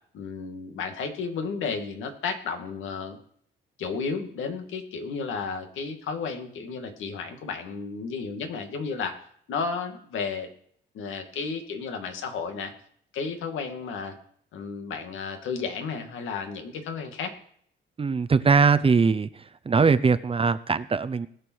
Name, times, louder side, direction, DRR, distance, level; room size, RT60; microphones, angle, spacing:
voice 1, 0.1-3.2 3.8-9.2 9.5-10.5 10.9-12.7 13.1-14.1 14.5-17.3, left 5 dB, 85° left, 5 dB, 2.3 m, -33 dB
voice 2, 18.0-19.3 19.7-21.3, right 5 dB, 30° right, 13 dB, 0.7 m, -21 dB
20.0 x 6.7 x 4.7 m, 0.62 s
cardioid pair, 90°, 20 cm